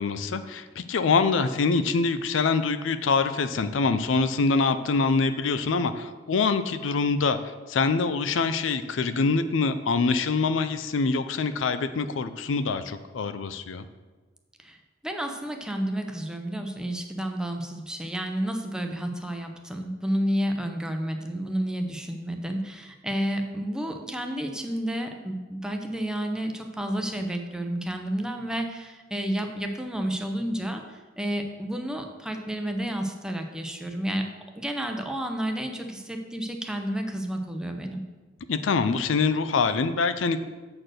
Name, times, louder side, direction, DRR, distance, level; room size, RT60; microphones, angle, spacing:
voice 1, 0.0-13.8 38.5-40.4, left 4 dB, 85° left, 11 dB, 0.5 m, -25 dB
voice 2, 15.0-34.3 34.6-38.0, right 1 dB, 5° right, 4 dB, 0.7 m, -31 dB
7.6 x 4.5 x 6.4 m, 1.3 s
head